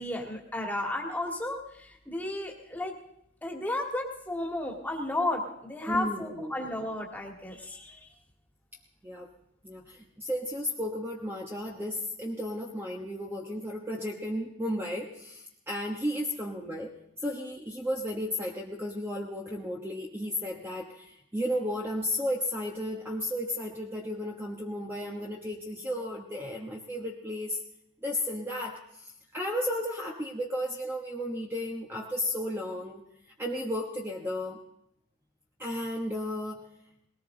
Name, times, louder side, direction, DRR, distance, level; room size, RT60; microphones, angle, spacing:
voice 1, 0.0-2.9 3.4-8.1, left 1 dB, 10° left, 0 dB, 2.1 m, -33 dB
voice 2, 5.9-6.5 9.0-9.3 9.6-16.9 17.2-27.6 28.0-33.0 33.4-34.6 35.6-36.7, left 1 dB, 10° right, -1 dB, 1.1 m, -34 dB
20.5 x 18.0 x 3.9 m, 0.78 s
head